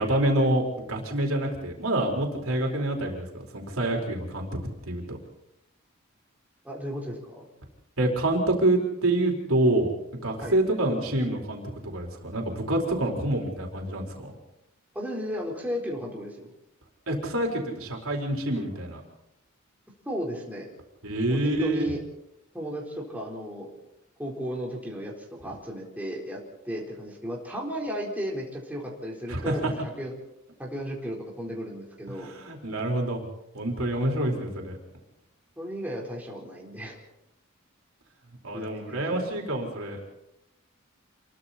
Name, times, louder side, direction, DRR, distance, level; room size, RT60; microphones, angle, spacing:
voice 1, 0.0-4.5 4.9-5.2 8.0-9.9 10.2-14.3 17.1-19.0 21.0-21.9 29.3-29.7 32.1-33.2 33.5-34.8 38.4-40.0, right 1 dB, 75° right, 1 dB, 4.4 m, -27 dB
voice 2, 6.6-7.5 10.4-10.5 14.9-16.5 20.1-20.7 21.3-22.0 22.5-23.7 24.2-25.1 25.4-26.4 26.7-30.1 30.6-32.3 34.1-34.3 35.6-37.0 38.5-39.3, equal, 10° right, -2 dB, 4.2 m, -34 dB
28.0 x 22.5 x 4.3 m, 0.85 s
head